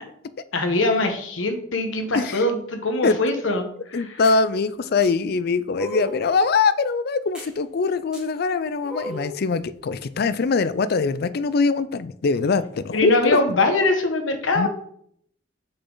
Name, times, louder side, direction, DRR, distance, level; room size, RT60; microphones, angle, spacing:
voice 1, 0.5-4.2 12.9-14.7, left 2 dB, 85° left, 5 dB, 1.2 m, -23 dB
voice 2, 3.9-13.4 14.6-14.7, left 4 dB, 50° left, 14 dB, 0.4 m, -22 dB
sound 1, 4.2-4.4 5.0-5.1 5.7-6.3 7.4-7.5 8.1-8.2 8.8-9.4, equal, 5° right, 3.1 m, -34 dB
6.6 x 6.0 x 3.9 m, 0.67 s
head